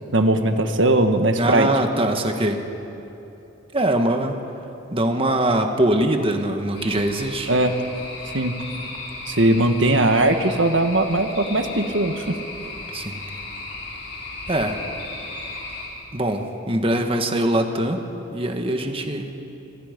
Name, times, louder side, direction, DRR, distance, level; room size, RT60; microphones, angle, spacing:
voice 1, 0.1-1.7 7.5-7.7 8.3-8.6 9.3-12.4, right 1 dB, 70° right, 6 dB, 1.7 m, -19 dB
voice 2, 1.4-2.6 3.7-4.4 4.9-7.5 12.9-13.2 14.5-14.8 16.1-18.0 18.3-19.3, right 1 dB, 30° right, 5 dB, 1.7 m, -22 dB
sound 1, 6.7-15.9, left 2 dB, 65° left, 6.0 m, -35 dB
28.0 x 25.0 x 5.4 m, 2.9 s
head